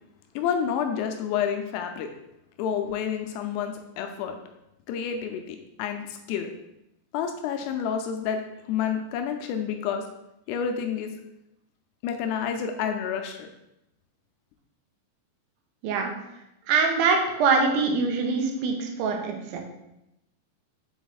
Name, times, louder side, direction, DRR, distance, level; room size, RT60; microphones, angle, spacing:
voice 1, 0.4-2.1 2.6-4.4 4.9-6.5 7.1-10.1 10.5-11.1 12.0-13.5, left 7 dB, 85° left, 5 dB, 2.4 m, -29 dB
voice 2, 15.8-16.1 16.7-19.6, right 4 dB, 90° right, 2 dB, 3.2 m, -24 dB
7.1 x 4.2 x 3.9 m, 0.88 s
omnidirectional pair, 5.2 m